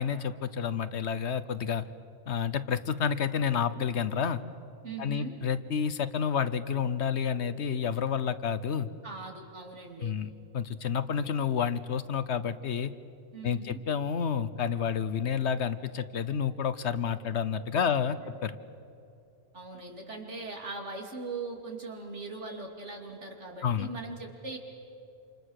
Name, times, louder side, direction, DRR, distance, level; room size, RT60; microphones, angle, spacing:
voice 1, 0.0-1.9 2.3-4.4 5.0-8.9 10.0-12.9 13.4-18.6 23.6-23.9, left 7 dB, 70° left, 13 dB, 1.1 m, -30 dB
voice 2, 4.8-5.4 9.0-10.2 13.3-13.8 17.8-18.0 19.5-24.6, right 3 dB, 75° right, 1 dB, 3.3 m, -40 dB
28.0 x 27.5 x 6.5 m, 2.6 s
omnidirectional pair, 1.2 m